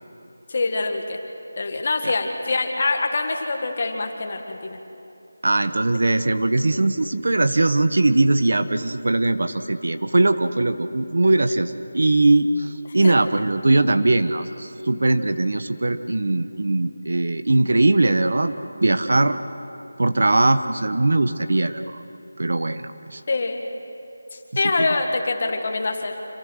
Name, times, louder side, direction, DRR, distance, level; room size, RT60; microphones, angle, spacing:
voice 1, 0.5-1.2 1.6-4.8 13.0-13.1 23.3-23.6 24.3-26.2, left 3 dB, 30° left, 4 dB, 1.8 m, -24 dB
voice 2, 5.4-19.4 20.0-22.0 22.4-23.2 24.8-24.9, right 2 dB, 55° right, 10 dB, 1.1 m, -20 dB
27.0 x 26.5 x 6.5 m, 2.8 s
figure-of-eight pair, 180°, 0 cm